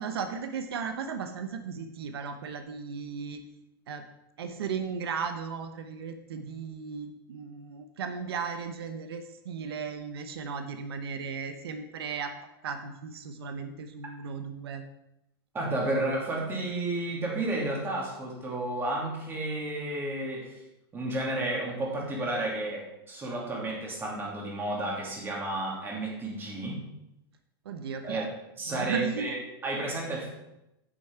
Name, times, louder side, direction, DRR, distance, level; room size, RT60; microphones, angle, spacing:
voice 1, 0.0-3.4 3.9-4.0 4.4-12.3 12.6-14.8 27.6-28.3 28.7-29.3, right 6 dB, 85° right, 7 dB, 0.9 m, -36 dB
voice 2, 15.5-20.6 20.9-26.8 28.0-28.2 28.6-29.4 29.6-30.3, right 2 dB, 15° right, -2 dB, 2.7 m, -32 dB
9.1 x 6.6 x 4.6 m, 0.88 s
supercardioid pair, 140°, 13 cm